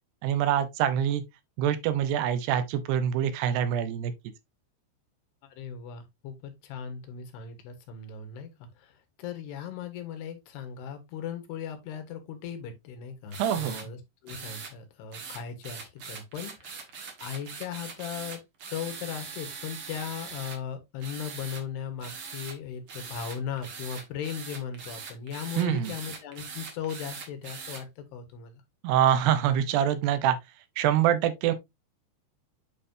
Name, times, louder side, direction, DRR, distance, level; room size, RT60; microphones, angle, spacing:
voice 1, 0.2-1.2 1.6-4.1 13.4-13.8 25.6-25.9 28.8-30.4 30.8-31.5, right 10 dB, 85° right, 3.0 m, -25 dB
voice 2, 5.5-16.9 17.2-18.4 18.7-28.6, left 8 dB, 85° left, 3.5 m, -38 dB
sound 1, 13.3-13.9 14.3-14.7 15.1-20.6 21.0-21.6 22.0-22.6 22.9-27.8, right 5 dB, 55° right, 1.6 m, -41 dB
8.4 x 5.5 x 2.7 m
omnidirectional pair, 4.6 m